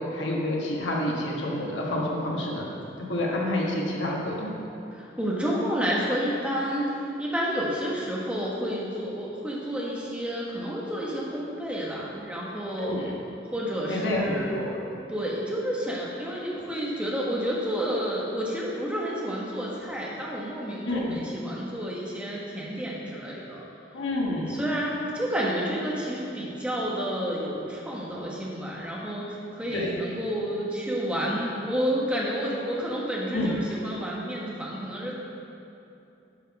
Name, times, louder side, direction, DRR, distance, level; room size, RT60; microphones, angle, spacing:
voice 1, 0.0-2.7 3.0-4.5 12.8-13.1 13.9-14.7 20.9-21.2 23.9-24.6 29.7-29.9 33.3-33.6, left 1 dB, 80° left, -3 dB, 1.5 m, -28 dB
voice 2, 4.9-12.9 13.5-14.6 15.1-23.7 24.5-35.2, equal, 5° right, -4 dB, 1.4 m, -30 dB
10.5 x 5.3 x 5.3 m, 2.7 s
head